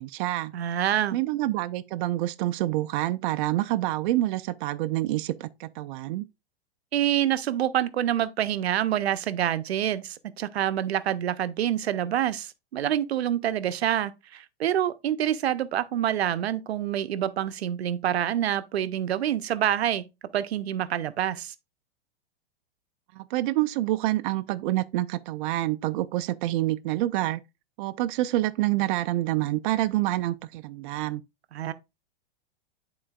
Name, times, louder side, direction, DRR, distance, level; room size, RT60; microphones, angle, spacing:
voice 1, 0.0-0.5 1.1-6.3 23.1-27.4 27.8-31.2, right 16 dB, 55° right, 0.5 m, -27 dB
voice 2, 0.5-1.2 6.9-20.1 20.3-21.5 31.5-31.7, right 11 dB, 85° right, 0.8 m, -27 dB
11.0 x 3.8 x 2.3 m
hypercardioid pair, 115°, 31 cm